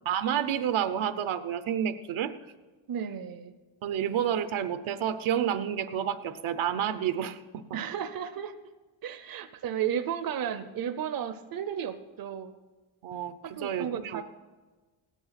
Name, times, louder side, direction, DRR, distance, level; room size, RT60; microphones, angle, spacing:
voice 1, 0.0-2.3 3.8-7.4 7.7-7.8 13.0-14.2, right 9 dB, 75° right, 11 dB, 0.9 m, -29 dB
voice 2, 2.9-3.5 7.7-8.5 9.0-12.5 13.5-14.2, right 9 dB, 45° right, 10 dB, 0.7 m, -33 dB
16.5 x 10.0 x 5.8 m, 1.3 s
wide cardioid pair, 155°, 48 cm